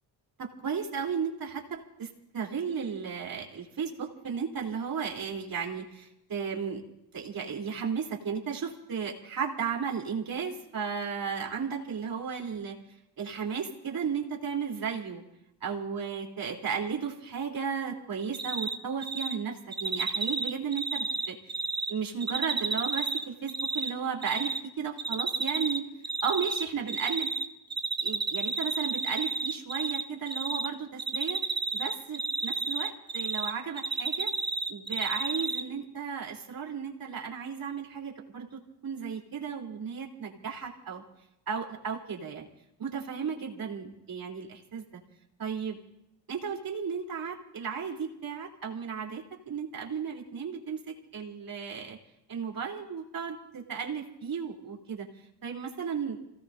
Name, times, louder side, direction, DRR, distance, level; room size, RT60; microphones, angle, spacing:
voice 1, 0.4-6.8 7.1-12.8 13.2-15.2 15.6-21.4 21.9-25.9 26.2-27.3 28.0-31.5 31.7-34.3 34.7-41.0 41.5-42.5 42.8-45.0 45.4-45.8 46.3-52.0 52.3-55.1 55.4-56.2, right 6 dB, 50° right, 0 dB, 3.6 m, -34 dB
Cricket, 18.3-18.7 19.0-19.3 19.7-21.9 22.2-23.9 24.2-24.6 25.0-25.8 26.0-27.4 27.7-30.0 30.3-30.7 31.0-33.5 33.8-35.6, right 3 dB, 25° right, 1.2 m, -30 dB
28.0 x 17.5 x 2.7 m, 0.85 s
supercardioid pair, 65°, 43 cm